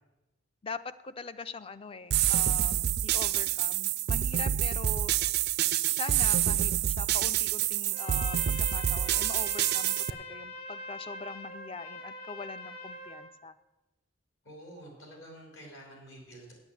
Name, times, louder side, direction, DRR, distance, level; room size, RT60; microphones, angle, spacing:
voice 1, 0.6-5.1 5.9-13.5, left 4 dB, 25° left, 14 dB, 0.4 m, -42 dB
sound 1, 2.1-10.1, right 12 dB, 55° right, 0.3 m, -27 dB
Trumpet, 7.9-13.3, left 2 dB, 50° left, 1.1 m, -43 dB
voice 2, 14.4-16.5, right 1 dB, 65° left, 0 dB, 4.2 m, -48 dB
9.0 x 8.2 x 8.3 m, 1.0 s
head